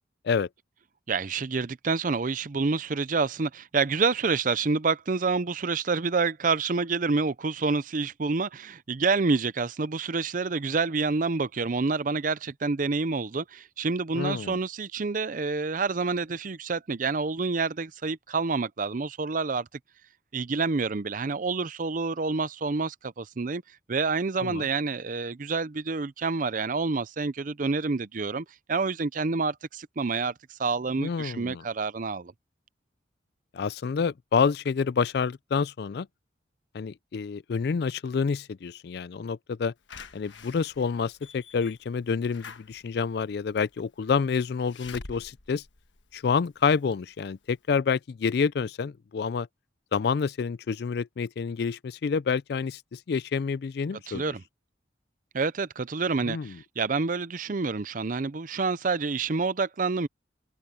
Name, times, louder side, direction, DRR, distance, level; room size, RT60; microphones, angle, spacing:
voice 1, 1.1-19.7 20.3-23.6 23.9-32.3 54.1-54.4 55.3-60.1, right 4 dB, 45° right, 0.5 m, -28 dB
voice 2, 14.1-14.6 24.4-24.7 31.0-31.6 33.5-36.1 36.7-39.7 40.1-45.6 46.1-49.5 49.9-54.3 56.2-56.6, left 5 dB, 60° left, 0.4 m, -28 dB
Slam / Alarm, 39.9-46.7 47.2-47.3 47.5-47.6, left 4 dB, 80° left, 1.3 m, -47 dB
head